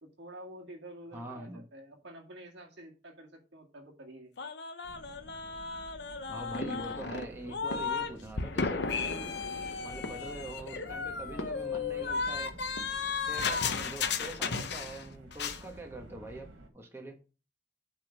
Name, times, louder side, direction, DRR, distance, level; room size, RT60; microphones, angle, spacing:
voice 1, 0.0-4.4, right 1 dB, 60° right, 2.2 m, -49 dB
voice 2, 1.1-1.6 6.3-9.4 9.8-12.5 13.3-16.5 16.7-17.2, right 1 dB, 10° right, 1.3 m, -44 dB
sound 1, 4.4-8.1 8.4-15.1 15.3-15.6, left 5 dB, 55° left, 0.8 m, -34 dB
sound 2, 4.8-16.7, right 1 dB, 85° right, 1.9 m, -51 dB
sound 3, 6.6-7.3 7.7-9.6 9.9-10.8 11.4-12.0 12.2-12.3 12.6-13.3, left 1 dB, 85° left, 0.9 m, -44 dB
8.7 x 3.8 x 6.0 m
head